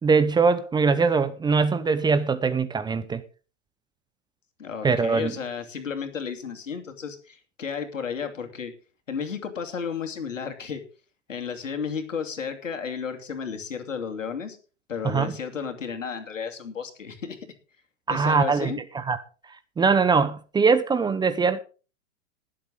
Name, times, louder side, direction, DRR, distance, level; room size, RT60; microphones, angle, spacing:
voice 1, 0.0-3.2 4.8-5.3 15.0-15.3 18.1-19.2 19.8-21.6, right 5 dB, 10° right, 0.8 m, -22 dB
voice 2, 4.6-8.7 9.1-10.8 11.3-14.6 14.9-17.5 18.1-18.8, left 6 dB, 90° left, 2.8 m, -33 dB
19.5 x 7.7 x 3.8 m
hypercardioid pair, 115°, 37 cm